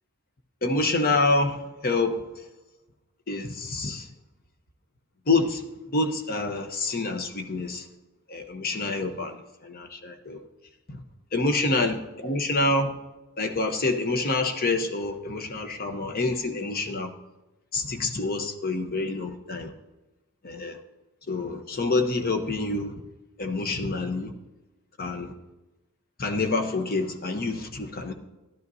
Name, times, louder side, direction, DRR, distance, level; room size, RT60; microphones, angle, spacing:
voice 1, 0.6-2.4 3.3-4.1 5.3-7.9 8.3-10.4 10.9-11.0 11.3-12.9 13.4-17.1 17.7-19.7 20.4-20.8 21.3-22.9 23.4-24.3 25.0-25.3 26.2-28.1, left 2 dB, 45° left, 6 dB, 0.9 m, -27 dB
14.0 x 12.0 x 2.7 m, 1.0 s
head